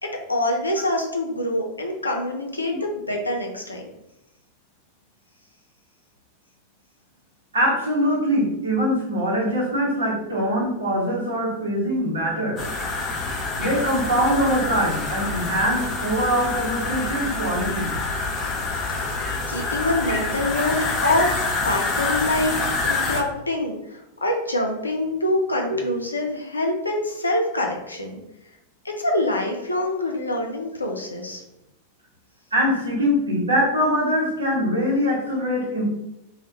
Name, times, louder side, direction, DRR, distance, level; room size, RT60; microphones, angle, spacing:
voice 1, 0.0-3.9 19.0-19.1 19.5-22.6 22.8-28.2 28.8-31.4, left 1 dB, 80° left, 1 dB, 0.4 m, -25 dB
voice 2, 7.5-12.6 13.6-17.9 25.7-25.8 32.5-35.9, equal, 75° right, -4 dB, 0.8 m, -23 dB
sound 1, 12.6-23.2, left 3 dB, 25° left, 0.5 m, -27 dB
2.1 x 2.1 x 2.9 m, 0.88 s
figure-of-eight pair, 90°, 0 cm